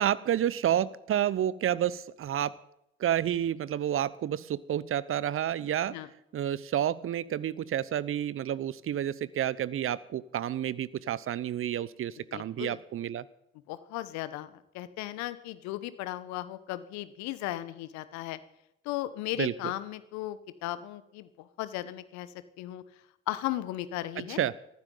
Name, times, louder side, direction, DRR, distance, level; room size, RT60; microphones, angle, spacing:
voice 1, 0.0-2.6 3.0-6.0 6.3-13.2 19.4-19.7 24.2-24.5, right 11 dB, 45° right, 20 dB, 0.8 m, -30 dB
voice 2, 12.3-12.8 13.7-18.4 18.8-21.3 21.6-22.3 22.6-22.8 23.3-24.4, left 15 dB, 65° left, 14 dB, 1.1 m, -36 dB
19.5 x 14.5 x 3.9 m, 0.80 s
figure-of-eight pair, 45°, 30 cm